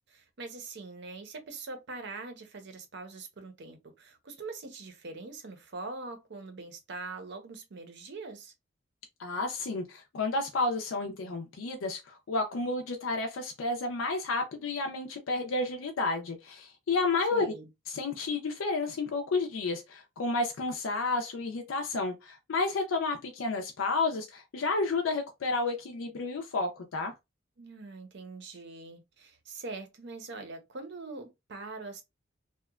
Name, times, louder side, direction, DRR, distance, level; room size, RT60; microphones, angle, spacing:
voice 1, 0.1-8.5 17.3-17.7 27.6-32.0, right 3 dB, 60° right, 0.6 m, -43 dB
voice 2, 9.2-17.5 17.9-27.1, left 3 dB, 80° left, 0.4 m, -31 dB
2.8 x 2.1 x 2.3 m
head